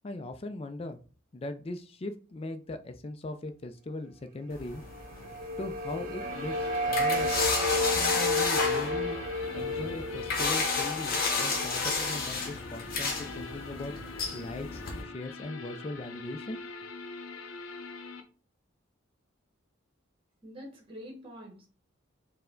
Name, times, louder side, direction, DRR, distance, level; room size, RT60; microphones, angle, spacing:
voice 1, 0.0-1.0 1.3-4.8 5.6-7.3 7.9-9.2 9.5-13.9 14.3-16.6, left 2 dB, 30° left, 8 dB, 0.4 m, -39 dB
sound 1, 4.5-15.0, left 4 dB, 45° left, 1.0 m, -32 dB
sound 2, 4.9-11.9, left 1 dB, 45° right, 0.4 m, -32 dB
sound 3, 6.2-18.2, left 4 dB, 90° left, 0.7 m, -43 dB
voice 2, 20.4-21.7, equal, 25° right, 1 dB, 1.0 m, -45 dB
4.6 x 2.1 x 3.7 m, 0.38 s
head